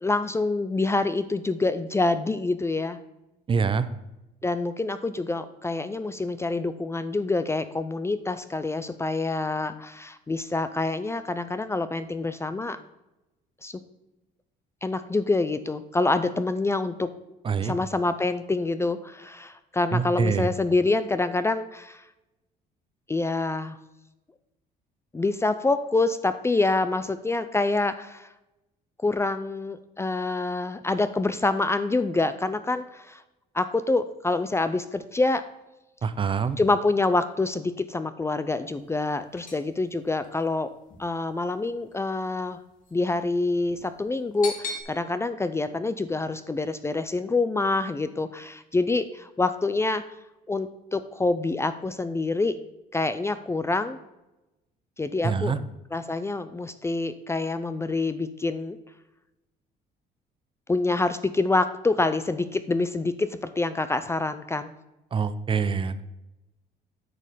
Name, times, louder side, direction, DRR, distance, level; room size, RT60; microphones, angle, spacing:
voice 1, 0.0-3.0 4.4-12.8 13.6-13.8 14.8-17.1 17.6-22.0 23.1-23.8 25.1-28.3 29.0-33.2 33.5-35.4 36.6-40.7 41.0-42.6 42.9-50.0 50.5-52.6 52.9-54.0 55.0-55.5 55.9-58.8 60.7-64.7, left 3 dB, 15° left, 12 dB, 0.5 m, -26 dB
voice 2, 3.5-3.9 17.4-17.7 19.9-20.5 36.0-36.6 55.2-55.6 65.1-66.0, right 5 dB, 30° right, 13 dB, 0.6 m, -25 dB
sound 1, 38.7-44.8, left 3 dB, 50° left, 2.3 m, -41 dB
9.6 x 5.3 x 5.1 m, 0.97 s
cardioid pair, 110°, 17 cm